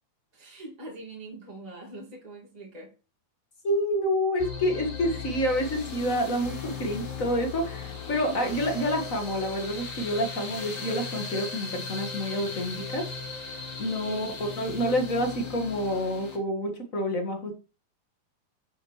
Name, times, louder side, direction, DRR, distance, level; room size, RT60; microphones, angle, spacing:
voice 1, 0.3-2.9 8.0-8.4 14.0-14.3, right 1 dB, 15° right, 1.7 m, -43 dB
voice 2, 3.6-13.0 13.8-17.5, equal, 45° left, 1.1 m, -28 dB
sound 1, 4.4-16.4, left 5 dB, 60° left, 4.0 m, -37 dB
10.0 x 6.9 x 3.2 m
omnidirectional pair, 4.0 m